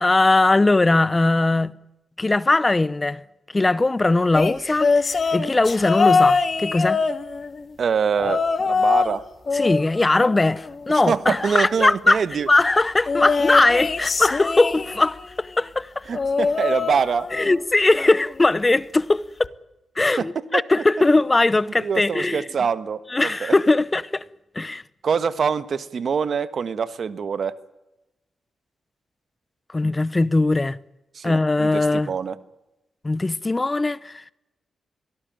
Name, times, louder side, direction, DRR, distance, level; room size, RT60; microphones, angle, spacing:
voice 1, 0.0-1.7 2.2-3.2 3.5-7.0 9.5-12.2 12.5-16.1 17.3-19.5 20.0-22.5 23.1-24.2 24.5-24.8 29.7-30.8 31.2-32.1 33.0-34.2, left 2 dB, 25° left, 0.8 m, -20 dB
sound 1, 4.3-7.6 8.2-9.2 9.5-11.0 13.1-15.2 16.1-17.6 17.9-18.3 19.4-19.5, left 4 dB, 50° left, 1.8 m, -23 dB
voice 2, 7.8-9.2 10.9-12.5 16.1-17.3 20.2-20.3 20.5-20.6 21.8-23.5 25.0-27.5 31.1-32.4, right 6 dB, 65° right, 1.4 m, -24 dB
23.5 x 17.5 x 9.0 m
cardioid pair, 60°, 0 cm